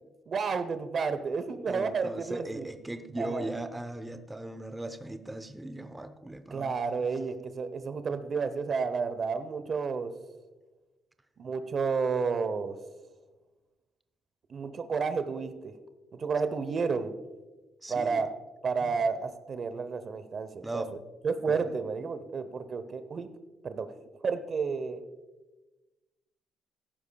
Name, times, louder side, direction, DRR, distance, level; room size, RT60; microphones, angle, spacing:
voice 1, 0.3-2.7 3.2-3.5 6.5-10.1 11.4-12.8 14.5-15.7 16.1-17.2 17.9-18.3 18.6-20.8 21.2-23.3 23.6-25.0, right 5 dB, 50° right, 11 dB, 0.8 m, -31 dB
voice 2, 1.7-6.8 17.8-18.2 18.8-18.9 20.6-20.9 21.5-21.7, right 1 dB, 10° right, 8 dB, 0.8 m, -38 dB
14.5 x 11.5 x 2.3 m, 1.1 s
cardioid pair, 90°, 0 cm